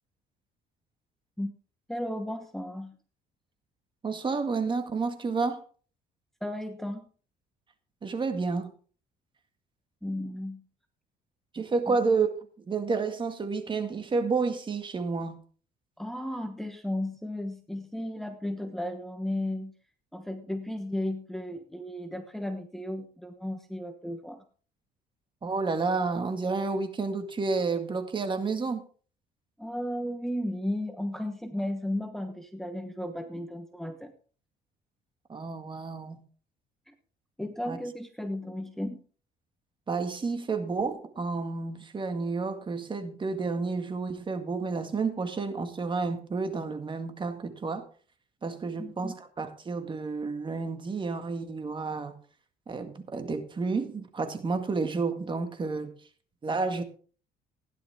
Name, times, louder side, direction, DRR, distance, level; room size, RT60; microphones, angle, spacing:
voice 1, 1.9-3.0 6.4-7.0 10.0-10.6 11.9-12.0 16.0-19.7 20.1-24.4 29.6-34.1 36.9-37.0 37.4-39.0 48.8-49.1, left 1 dB, ahead, 1.1 m, -34 dB
voice 2, 4.0-5.6 8.0-8.7 11.5-12.3 12.7-15.4 25.4-28.8 35.3-36.2 37.7-37.8 39.9-47.8 48.4-52.1 52.7-55.9 56.4-56.8, right 4 dB, 30° right, 1.9 m, -30 dB
16.0 x 10.5 x 3.6 m
cardioid pair, 110°, 17 cm